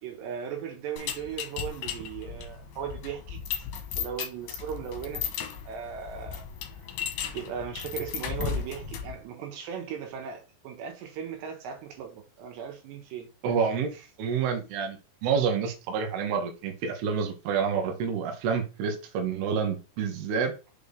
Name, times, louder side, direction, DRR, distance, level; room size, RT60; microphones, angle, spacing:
voice 1, 0.0-3.4 4.0-6.5 7.0-13.6 13.9-14.0, right 8 dB, 90° right, 3.5 m, -38 dB
sound 1, 1.0-9.2, left 8 dB, 70° left, 2.7 m, -35 dB
voice 2, 13.4-13.9 14.2-20.5, right 6 dB, 75° right, 3.0 m, -28 dB
6.9 x 4.3 x 3.4 m
omnidirectional pair, 4.9 m